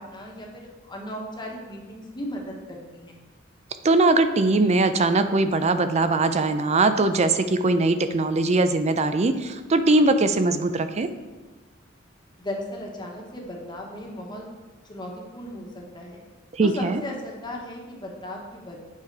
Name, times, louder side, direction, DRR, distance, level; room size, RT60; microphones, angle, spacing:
voice 1, 0.0-3.2 12.4-14.5 14.9-16.2 16.6-18.8, left 1 dB, 20° left, -1 dB, 1.3 m, -36 dB
voice 2, 3.8-11.1 16.5-17.0, right 2 dB, 35° right, 10 dB, 0.5 m, -21 dB
8.3 x 4.9 x 4.7 m, 1.3 s
head